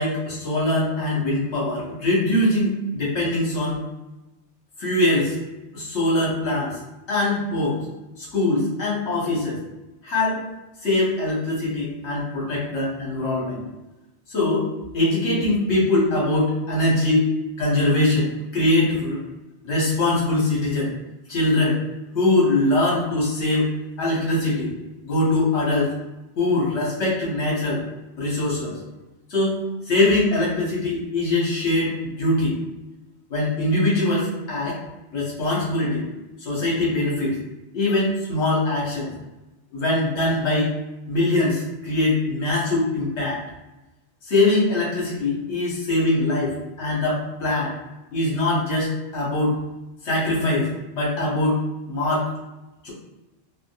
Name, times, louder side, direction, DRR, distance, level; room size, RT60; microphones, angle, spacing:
voice 1, 0.0-3.8 4.8-5.4 5.7-6.8 7.1-7.8 8.2-9.6 10.0-10.4 10.8-13.6 14.3-14.7 14.9-17.3 17.6-19.2 19.6-20.9 21.3-21.8 22.1-23.7 24.0-24.7 25.0-25.9 26.4-27.8 28.2-28.8 29.3-32.6 33.3-34.8 35.1-36.0 36.4-37.4 37.7-39.1 39.7-40.7 41.1-43.4 44.3-47.7 48.1-49.6 50.0-52.3 52.8-52.9, left 2 dB, 65° left, -5 dB, 1.2 m, -22 dB
3.5 x 2.2 x 2.2 m, 1.0 s
omnidirectional pair, 1.3 m